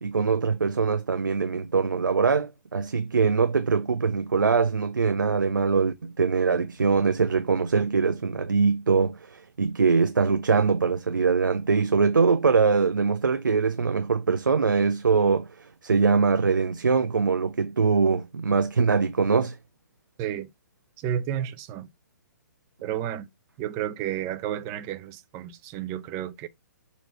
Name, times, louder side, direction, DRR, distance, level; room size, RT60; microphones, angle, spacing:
voice 1, 0.0-19.6, right 5 dB, 90° right, 0.7 m, -23 dB
voice 2, 20.2-20.5 21.0-21.9 22.8-23.3 23.6-26.5, right 10 dB, 30° right, 0.8 m, -31 dB
6.9 x 3.0 x 5.8 m
hypercardioid pair, 130°, 10 cm